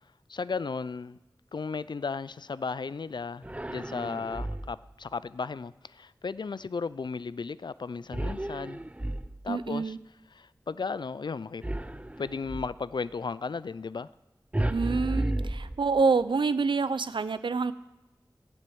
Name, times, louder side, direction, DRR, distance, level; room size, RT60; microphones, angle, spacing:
voice 1, 0.3-1.2 1.5-8.8 9.4-9.9 10.4-11.6 12.2-14.1, left 5 dB, 65° left, 0.4 m, -35 dB
sound 1, 3.4-4.9 8.1-9.7 11.6-12.8 14.5-16.2, right 1 dB, 15° right, 0.5 m, -33 dB
voice 2, 9.5-10.0 14.7-17.7, right 4 dB, 85° right, 0.5 m, -27 dB
9.8 x 7.5 x 7.9 m
wide cardioid pair, 45°, 8 cm